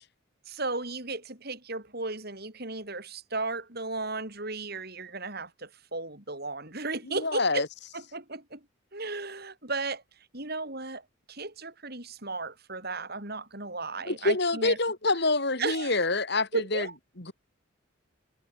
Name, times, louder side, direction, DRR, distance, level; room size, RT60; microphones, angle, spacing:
voice 1, 0.5-7.6 7.9-8.6 8.9-10.0 10.3-11.0 11.3-14.8 15.6-16.0 16.5-16.9, right 3 dB, 50° right, 6.3 m, -35 dB
voice 2, 7.1-7.7 14.1-16.9 17.2-17.3, left 3 dB, 50° left, 2.8 m, -26 dB
head